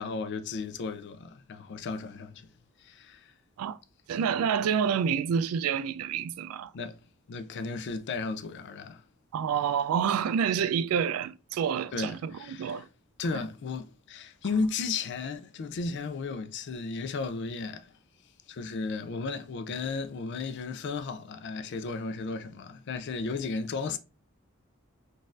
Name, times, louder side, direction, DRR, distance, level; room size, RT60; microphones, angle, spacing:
voice 1, 0.0-2.5 2.8-3.3 6.7-7.0 7.3-9.0 11.9-12.9 13.2-17.9 18.5-24.0, left 4 dB, 55° left, 0.4 m, -34 dB
voice 2, 4.1-6.7 9.3-12.9, right 7 dB, 80° right, 0.3 m, -28 dB
3.9 x 2.6 x 2.4 m
head